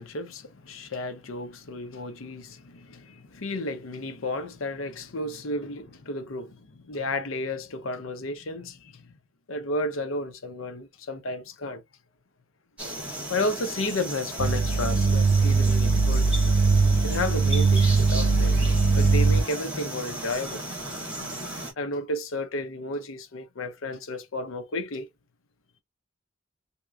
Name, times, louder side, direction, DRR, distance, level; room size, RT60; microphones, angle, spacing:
voice 1, 0.0-9.2 9.5-11.8 13.3-16.2 17.0-18.6 18.9-20.6 21.8-25.1, left 2 dB, 85° left, 0.7 m, -32 dB
sound 1, 12.8-21.7, right 1 dB, 5° right, 1.9 m, -35 dB
sound 2, 14.4-19.4, right 4 dB, 70° right, 0.8 m, -21 dB
3.5 x 2.9 x 2.3 m
head